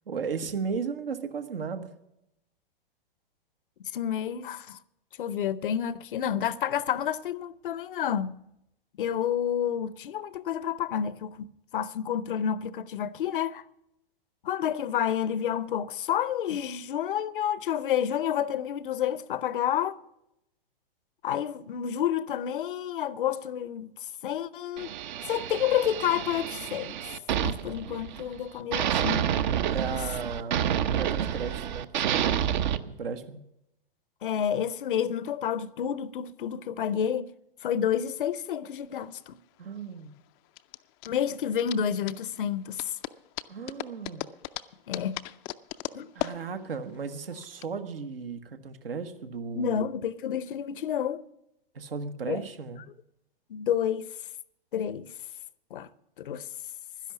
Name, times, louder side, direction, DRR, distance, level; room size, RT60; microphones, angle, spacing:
voice 1, 0.1-1.9 29.7-32.5 32.9-33.4 39.6-40.1 43.5-44.2 46.1-49.8 51.7-52.8, right 5 dB, 75° right, 1.3 m, -35 dB
voice 2, 3.9-4.8 5.2-8.4 9.0-11.5 11.7-13.6 14.4-20.0 21.2-23.9 24.2-24.9 25.3-27.0 27.4-29.3 29.9-30.0 34.2-37.3 37.6-39.3 41.1-42.9 44.9-45.2 45.9-46.1 49.5-51.2 52.3-52.4 53.5-54.1 54.7-55.1 55.7-55.9 56.2-56.5, left 9 dB, 60° left, 0.7 m, -29 dB
sound 1, 24.8-28.4 28.7-32.8, right 9 dB, 50° right, 0.8 m, -29 dB
sound 2, 38.8-47.7, left 15 dB, 25° left, 0.4 m, -39 dB
12.0 x 10.5 x 7.1 m
figure-of-eight pair, 110°, 29 cm